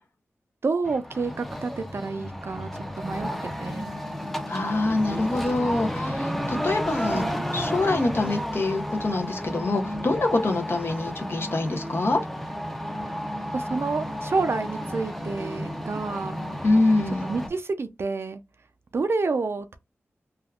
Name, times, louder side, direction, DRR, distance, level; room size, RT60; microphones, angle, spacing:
voice 1, 0.6-3.3 3.6-3.9 6.7-6.8 7.1-7.4 13.5-16.4 17.1-18.4 18.9-19.8, right 4 dB, 60° right, 0.3 m, -29 dB
sound 1, 0.8-17.5, equal, 5° left, 0.5 m, -32 dB
voice 2, 4.5-7.2 7.5-12.2 16.6-17.2, left 2 dB, 55° left, 0.5 m, -25 dB
3.4 x 2.2 x 2.3 m
wide cardioid pair, 70°, 5 cm